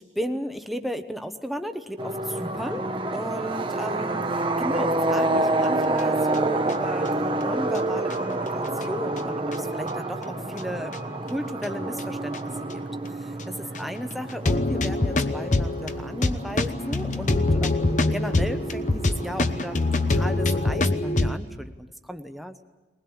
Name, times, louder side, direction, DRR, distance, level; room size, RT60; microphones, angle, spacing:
voice 1, 0.0-11.0 11.2-12.8 13.1-22.7, equal, ahead, 7 dB, 0.9 m, -35 dB
sound 1, 2.0-20.8, right 2 dB, 25° right, 0.9 m, -29 dB
sound 2, 6.0-6.7 7.1-7.2 7.8-7.9 8.1-8.2 8.7-9.6 10.2-10.6 10.9-11.0 11.6-12.1 12.3-12.4 12.7-12.8 13.4-13.5 13.7-13.8 14.3-21.4, left 2 dB, 40° left, 0.9 m, -25 dB
21.5 x 20.0 x 8.8 m, 1.2 s
head